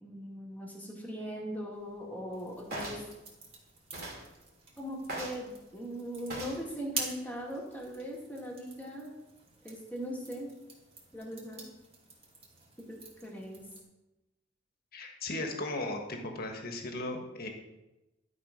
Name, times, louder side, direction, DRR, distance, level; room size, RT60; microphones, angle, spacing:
voice 1, 0.0-3.0 4.8-9.1 9.6-10.5 11.1-11.6 12.9-13.6, equal, 10° left, -2 dB, 1.9 m, -40 dB
sound 1, 2.3-13.8, right 3 dB, 35° right, 2.4 m, -47 dB
sound 2, 2.7-3.1 3.9-4.2 5.1-5.4 6.3-6.6 7.4-7.6, right 1 dB, 55° right, 2.5 m, -39 dB
voice 2, 14.9-17.5, left 2 dB, 55° left, 3 dB, 1.4 m, -36 dB
11.5 x 5.0 x 5.1 m, 0.99 s
head